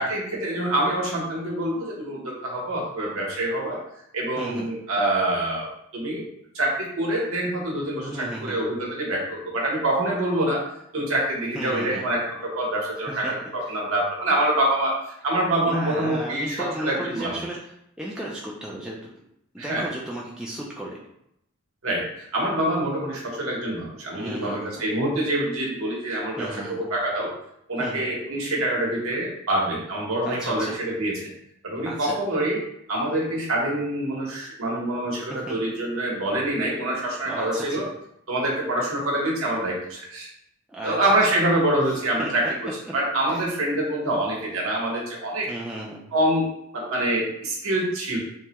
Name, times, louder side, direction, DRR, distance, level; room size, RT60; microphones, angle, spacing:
voice 1, 0.0-3.8 4.1-6.3 6.5-10.6 10.9-17.4 19.6-19.9 21.8-27.3 27.7-31.3 31.6-32.6 32.9-37.9 38.3-40.3 40.8-42.6 42.9-45.5 46.1-48.2, right 1 dB, 70° right, -3 dB, 1.0 m, -26 dB
voice 2, 4.4-4.7 8.1-8.6 11.5-12.0 13.1-13.3 13.6-13.7 15.6-17.6 18.0-19.0 19.5-21.0 24.1-24.8 26.4-26.8 27.8-28.0 30.2-30.8 31.9-32.2 35.3-35.6 37.3-37.8 40.7-41.0 42.2-42.3 43.3-43.4 45.5-46.0, right 1 dB, 5° right, -5 dB, 0.3 m, -34 dB
3.5 x 2.1 x 2.9 m, 0.76 s
head